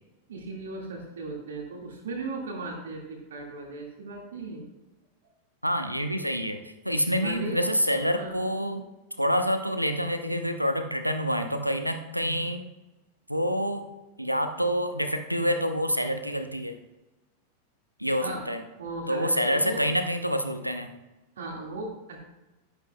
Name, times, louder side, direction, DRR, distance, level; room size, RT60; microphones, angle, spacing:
voice 1, 0.3-4.6 7.1-7.6 8.2-8.4 18.2-18.5 18.8-19.8 21.4-22.2, right 2 dB, 65° right, 0 dB, 2.0 m, -37 dB
voice 2, 5.6-6.6 6.8-8.8 9.2-12.6 13.3-13.8 14.2-16.8 18.0-18.6 19.1-20.9, equal, 90° right, 8 dB, 0.8 m, -27 dB
11.5 x 11.0 x 2.3 m, 1.1 s
figure-of-eight pair, 90°, 0 cm